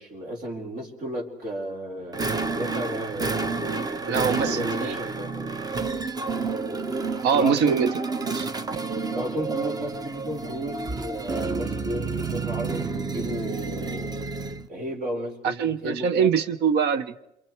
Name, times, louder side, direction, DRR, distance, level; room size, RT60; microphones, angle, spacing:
voice 1, 0.0-2.2 2.5-5.3 7.3-7.8 9.1-14.1 14.7-16.3, equal, 60° right, 1 dB, 4.6 m, -33 dB
sound 1, 2.1-14.7, right 4 dB, 25° right, 0.8 m, -30 dB
voice 2, 4.1-4.9 7.2-7.9 8.2-8.5 15.4-17.2, right 7 dB, 80° right, 13 dB, 1.1 m, -23 dB
28.0 x 24.0 x 4.6 m, 0.83 s
cardioid pair, 110°, 17 cm